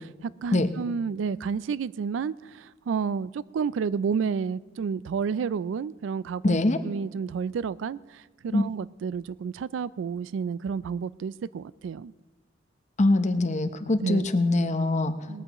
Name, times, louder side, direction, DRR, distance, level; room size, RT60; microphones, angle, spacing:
voice 1, 0.4-2.3 2.9-8.0 8.4-12.1 14.0-14.3 15.3-15.4, right 6 dB, 90° right, 19 dB, 0.3 m, -30 dB
voice 2, 6.4-6.8 8.5-8.6 13.0-15.1, left 2 dB, 40° left, 9 dB, 0.8 m, -23 dB
19.5 x 14.0 x 3.0 m, 1.3 s
head